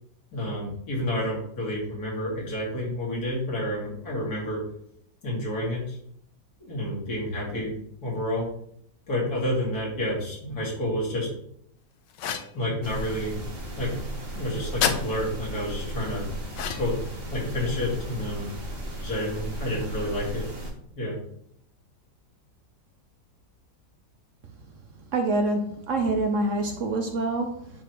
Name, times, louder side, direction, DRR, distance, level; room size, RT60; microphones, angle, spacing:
voice 1, 0.3-4.6 5.2-6.0 6.6-7.8 8.0-8.5 9.1-11.3 12.5-13.4 13.8-13.9 14.3-16.3 16.7-17.0 17.3-18.5 19.0-20.5 20.9-21.2, left 1 dB, 55° left, -4 dB, 2.9 m, -29 dB
sound 1, 12.2-12.6 14.8-15.0 16.5-17.0, left 8 dB, 90° left, 1.3 m, -27 dB
sound 2, 12.8-20.7, right 1 dB, 35° right, 1.7 m, -35 dB
voice 2, 25.1-27.7, right 2 dB, 60° right, 5 dB, 0.8 m, -26 dB
9.9 x 4.0 x 3.1 m, 0.69 s
omnidirectional pair, 1.9 m